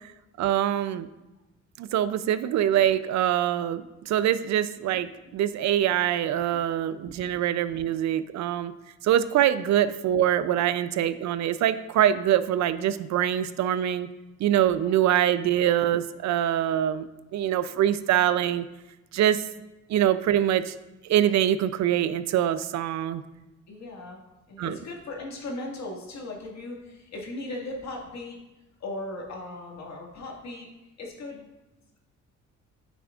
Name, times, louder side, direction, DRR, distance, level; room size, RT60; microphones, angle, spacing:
voice 1, 0.4-1.1 1.8-8.7 9.0-14.1 14.4-18.6 19.1-19.4 19.9-20.7 21.1-23.2 24.6-24.8, right 11 dB, 65° right, 14 dB, 0.5 m, -24 dB
voice 2, 4.9-5.4 7.1-7.3 14.8-14.9 23.7-24.2 24.5-28.4 28.8-30.7 31.0-31.4, left 2 dB, 60° left, -1 dB, 1.8 m, -38 dB
9.0 x 6.1 x 2.4 m, 1.0 s
cardioid pair, 90°, 30 cm